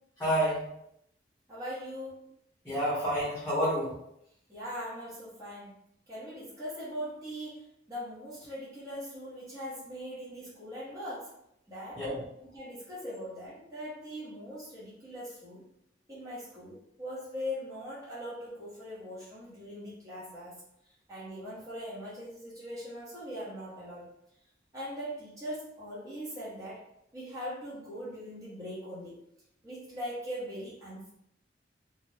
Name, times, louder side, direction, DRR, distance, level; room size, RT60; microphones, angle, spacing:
voice 1, 0.2-0.7 2.6-3.9 12.0-12.2, equal, 10° left, -9 dB, 0.9 m, -29 dB
voice 2, 1.5-2.2 4.5-5.8 6.1-11.3 11.7-12.0 12.4-15.6 16.1-20.6 21.1-24.1 24.7-26.8 27.1-29.2 29.6-31.1, equal, 20° right, -10 dB, 0.9 m, -41 dB
2.5 x 2.1 x 3.2 m, 0.77 s
head